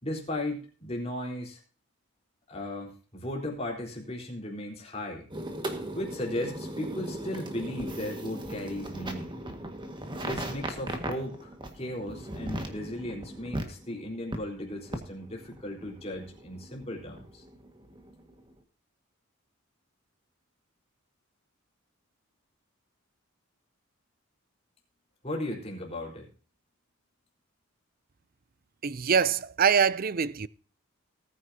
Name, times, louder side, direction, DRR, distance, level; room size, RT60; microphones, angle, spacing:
voice 1, 0.0-1.6 2.5-5.3 5.9-9.3 10.2-17.4 25.2-26.3, left 1 dB, 30° left, 4.1 m, -36 dB
sound 1, 5.3-18.5, right 1 dB, 20° right, 1.7 m, -38 dB
voice 2, 28.8-30.5, right 6 dB, 40° right, 0.5 m, -24 dB
19.0 x 9.7 x 2.8 m
head